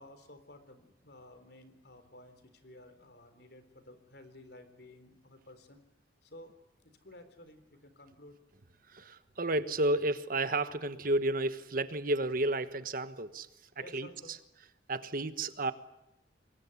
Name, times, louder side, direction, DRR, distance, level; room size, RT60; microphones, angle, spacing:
voice 1, 0.0-5.8 6.2-6.6 7.0-8.4 13.8-14.3, left 1 dB, 65° left, 10 dB, 3.7 m, -54 dB
voice 2, 8.9-13.5 13.9-14.1 14.9-15.7, right 2 dB, 55° right, 11 dB, 1.3 m, -31 dB
27.0 x 21.5 x 9.9 m, 0.88 s
head